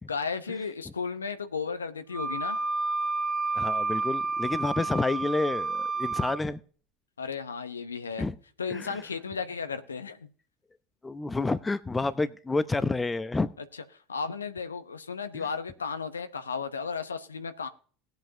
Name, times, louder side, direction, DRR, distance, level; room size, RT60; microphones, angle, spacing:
voice 1, 0.1-2.6 7.2-8.3 8.6-10.3 14.1-17.7, left 5 dB, 90° left, 0.8 m, -34 dB
Wind instrument woodwind instrument, 2.1-6.4, right 3 dB, 15° right, 1.0 m, -30 dB
voice 2, 3.5-6.6 8.2-8.4 8.7-9.0 11.0-13.5 15.3-15.4, left 3 dB, 15° left, 0.8 m, -29 dB
19.5 x 8.0 x 2.8 m
hypercardioid pair, 75°, 0 cm